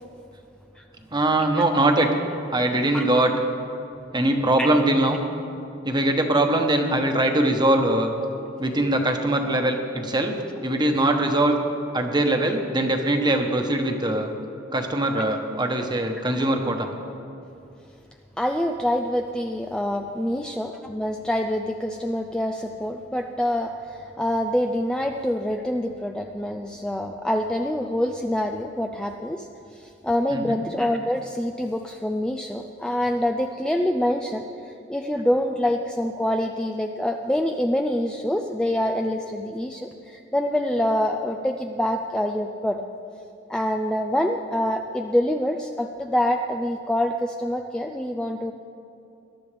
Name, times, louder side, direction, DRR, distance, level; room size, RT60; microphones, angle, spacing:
voice 1, 1.1-2.1 2.5-3.3 4.1-5.2 5.8-8.1 8.6-10.3 10.6-11.5 11.9-14.3 14.7-16.9 30.3-30.6, right 1 dB, 25° right, 4 dB, 1.2 m, -22 dB
voice 2, 18.4-29.5 29.7-34.4 34.9-42.8 43.5-48.5, left 1 dB, 5° left, 3 dB, 0.4 m, -26 dB
21.0 x 11.5 x 3.4 m, 2.7 s
head